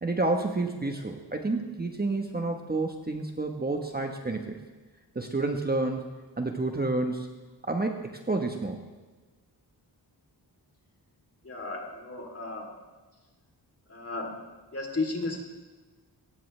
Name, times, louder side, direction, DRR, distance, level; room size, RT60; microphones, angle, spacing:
voice 1, 0.0-4.6 5.1-6.1 6.4-7.3 7.6-8.8, right 2 dB, 25° right, 3 dB, 1.2 m, -29 dB
voice 2, 11.4-12.7 13.9-14.4 14.7-15.4, left 3 dB, 35° left, 1 dB, 3.3 m, -34 dB
23.0 x 18.5 x 3.3 m, 1.3 s
wide cardioid pair, 150°, 40 cm